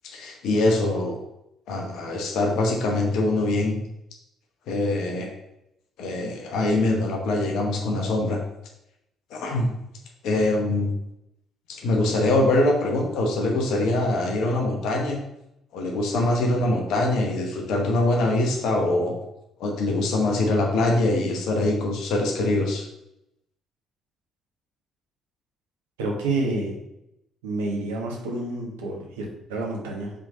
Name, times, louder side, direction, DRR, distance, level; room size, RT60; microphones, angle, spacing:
voice 1, 0.0-1.2 1.7-3.8 4.7-5.3 6.0-8.4 9.3-9.7 10.2-10.9 11.7-15.2 15.7-19.1 19.6-22.8, left 2 dB, 65° left, 1 dB, 1.0 m, -23 dB
voice 2, 26.0-26.8 27.4-30.1, right 2 dB, 75° right, -1 dB, 1.2 m, -29 dB
5.0 x 3.7 x 5.0 m, 0.84 s
figure-of-eight pair, 45°, 0 cm